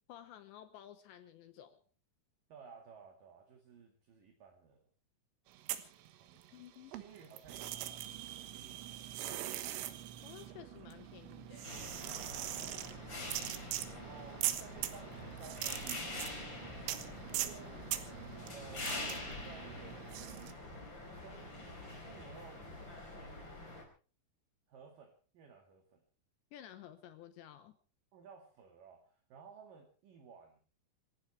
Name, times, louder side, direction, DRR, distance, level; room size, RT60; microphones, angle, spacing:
voice 1, 0.1-1.8 6.5-6.9 10.2-11.8 26.5-27.7, left 11 dB, 75° left, 10 dB, 2.8 m, -53 dB
voice 2, 2.5-4.9 6.2-9.6 12.5-13.0 13.9-16.9 17.3-17.9 18.5-20.4 21.2-23.4 24.7-26.0 28.1-30.6, right 6 dB, 50° right, 3 dB, 3.2 m, -57 dB
sound 1, 5.5-6.6 6.9-20.5, right 13 dB, 75° right, 3.7 m, -42 dB
sound 2, 11.6-23.8, left 2 dB, 25° left, 5.0 m, -46 dB
sound 3, 15.1-23.1, left 3 dB, 40° left, 6.6 m, -58 dB
26.5 x 16.0 x 3.3 m, 0.37 s
omnidirectional pair, 6.0 m